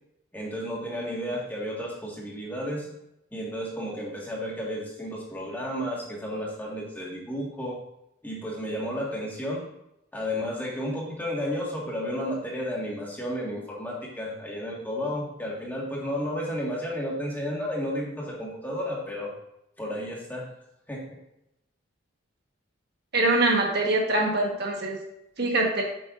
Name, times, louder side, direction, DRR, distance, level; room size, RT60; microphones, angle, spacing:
voice 1, 0.3-2.9 3.3-7.8 8.2-9.6 10.1-19.3 19.8-20.5 20.9-21.0, equal, 10° left, -3 dB, 1.7 m, -32 dB
voice 2, 23.1-25.0 25.4-25.8, right 2 dB, 50° right, 0 dB, 1.4 m, -23 dB
8.1 x 7.8 x 2.6 m, 0.84 s
head